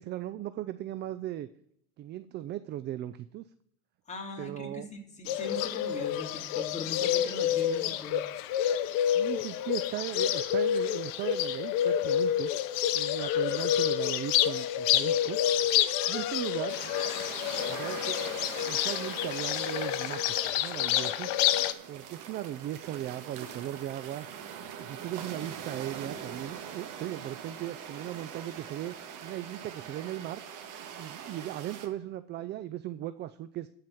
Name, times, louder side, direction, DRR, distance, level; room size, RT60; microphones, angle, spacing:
voice 1, 0.0-1.5 2.0-3.5 4.4-4.9 9.1-12.5 12.9-15.4 16.1-16.8 17.7-18.3 18.7-21.3 21.9-24.3 24.8-29.0 29.2-30.4 31.0-33.7, right 13 dB, 30° right, 13 dB, 0.3 m, -37 dB
voice 2, 4.1-8.2, left 3 dB, 15° left, 0 dB, 2.8 m, -40 dB
Bird, 5.3-21.7, left 11 dB, 55° left, 0.8 m, -28 dB
sound 1, 16.7-31.9, right 8 dB, 50° right, 1.6 m, -43 dB
12.5 x 4.7 x 7.1 m, 0.74 s
hypercardioid pair, 100°, 40 cm